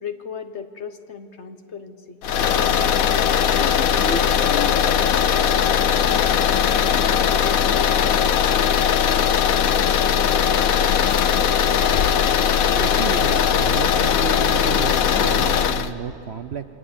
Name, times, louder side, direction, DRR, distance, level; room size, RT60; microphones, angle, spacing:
voice 1, 0.0-3.0 3.6-5.5, left 5 dB, 50° left, 8 dB, 1.4 m, -35 dB
sound 1, 2.2-15.9, left 8 dB, 65° left, 1.2 m, -19 dB
voice 2, 12.7-16.6, right 7 dB, 55° right, 10 dB, 0.8 m, -31 dB
28.5 x 23.5 x 8.8 m, 2.8 s
omnidirectional pair, 1.6 m